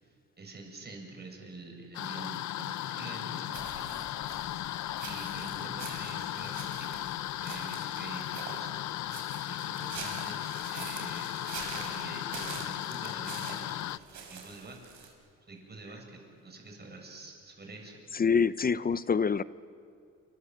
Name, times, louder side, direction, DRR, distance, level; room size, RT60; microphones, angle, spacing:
voice 1, 0.0-4.1 5.0-7.1 7.4-9.2 9.4-11.4 11.7-14.9 15.5-17.9, right 3 dB, 35° right, 1 dB, 7.4 m, -47 dB
sound 1, 1.9-14.0, left 13 dB, 70° left, 0.7 m, -36 dB
sound 2, 3.5-15.1, right 6 dB, 70° right, 5.7 m, -45 dB
voice 2, 18.1-19.4, left 6 dB, 30° left, 17 dB, 0.7 m, -26 dB
28.0 x 26.0 x 7.9 m, 2.4 s
cardioid pair, 90°, 30 cm